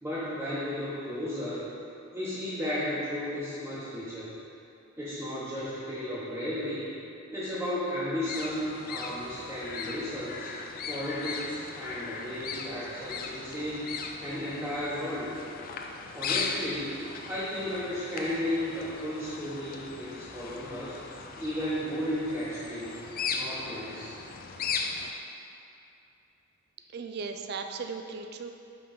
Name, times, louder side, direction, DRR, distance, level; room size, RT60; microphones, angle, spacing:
voice 1, 0.0-1.6 2.1-4.3 5.0-6.9 7.3-10.5 10.9-15.3 16.1-21.0 21.4-23.0 23.3-24.2, equal, 10° right, -12 dB, 1.0 m, -34 dB
sound 1, 8.2-25.1, left 5 dB, 45° left, 0.4 m, -38 dB
voice 2, 26.9-28.5, right 4 dB, 50° right, 6 dB, 0.4 m, -37 dB
5.4 x 3.9 x 5.6 m, 2.7 s
head